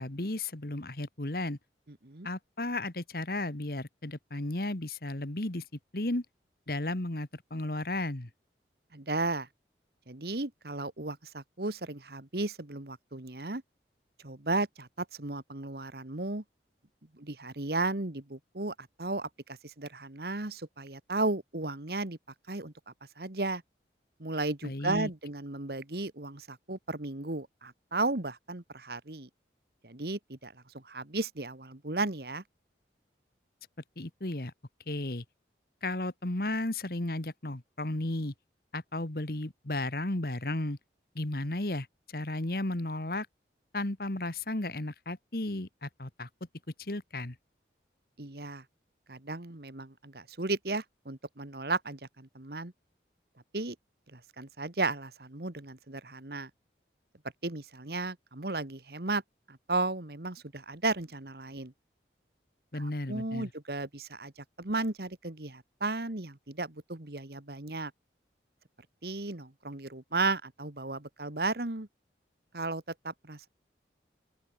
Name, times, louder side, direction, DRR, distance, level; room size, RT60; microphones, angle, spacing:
voice 1, 0.0-1.6 2.2-5.6 5.9-6.3 6.7-8.3 24.6-25.1 34.0-34.5 34.9-35.2 35.8-38.3 38.7-40.8 41.2-41.9 42.1-43.3 43.7-46.3 46.8-47.4 62.7-63.5, left 2 dB, 55° left, 1.8 m, -34 dB
voice 2, 1.9-2.3 8.9-9.5 10.1-13.6 14.2-16.4 17.1-22.2 22.5-23.6 24.2-29.3 29.8-32.4 48.2-48.6 49.1-52.7 53.5-53.7 54.1-56.5 57.4-59.2 59.5-61.7 62.7-64.3 64.6-67.9 69.0-71.9 72.5-73.5, right 2 dB, 60° right, 1.7 m, -34 dB
open air
head